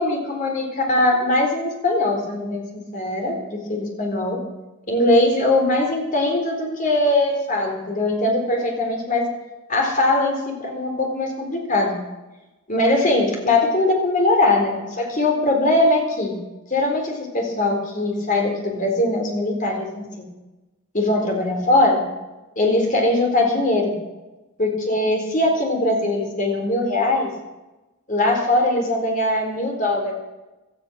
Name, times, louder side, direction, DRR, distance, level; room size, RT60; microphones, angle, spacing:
voice 1, 0.0-4.4 4.9-9.2 9.7-12.0 12.7-16.4 16.7-20.3 20.9-22.0 22.6-24.0 24.6-27.3 28.1-30.1, left 2 dB, 35° left, 1 dB, 3.9 m, -21 dB
17.0 x 13.0 x 6.3 m, 1.1 s
head